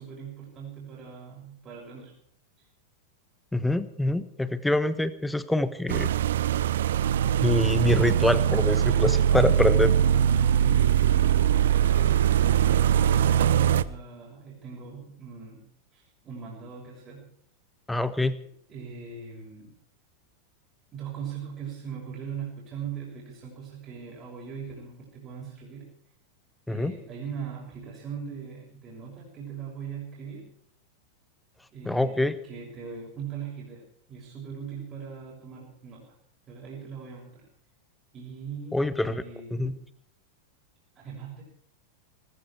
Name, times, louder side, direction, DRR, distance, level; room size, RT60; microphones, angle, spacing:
voice 1, 0.0-2.1 2.6-2.7 10.6-15.6 15.9-17.3 18.7-19.7 20.9-25.9 26.7-30.4 31.7-36.1 36.5-37.5 38.1-39.9 40.9-41.4, right 6 dB, 30° right, -2 dB, 6.5 m, -40 dB
voice 2, 3.5-6.1 7.4-9.9 17.9-18.4 26.7-26.9 31.8-32.3 38.7-39.2 39.5-39.7, left 1 dB, 5° left, 14 dB, 1.3 m, -25 dB
sound 1, 5.9-13.8, right 9 dB, 60° right, 0.7 m, -22 dB
20.0 x 15.0 x 4.8 m, 0.64 s
figure-of-eight pair, 90°, 0 cm